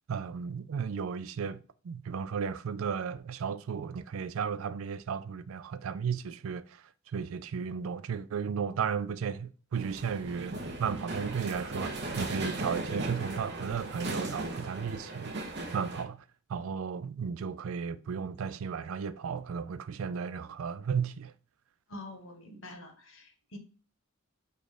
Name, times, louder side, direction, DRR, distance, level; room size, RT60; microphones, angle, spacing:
voice 1, 0.1-6.8 7.1-16.2 16.5-21.3, right 6 dB, 75° right, 0.4 m, -34 dB
sound 1, 9.7-16.0, right 2 dB, 55° right, 0.9 m, -37 dB
voice 2, 21.9-23.6, left 1 dB, 65° left, 1.1 m, -46 dB
5.0 x 2.5 x 4.1 m
head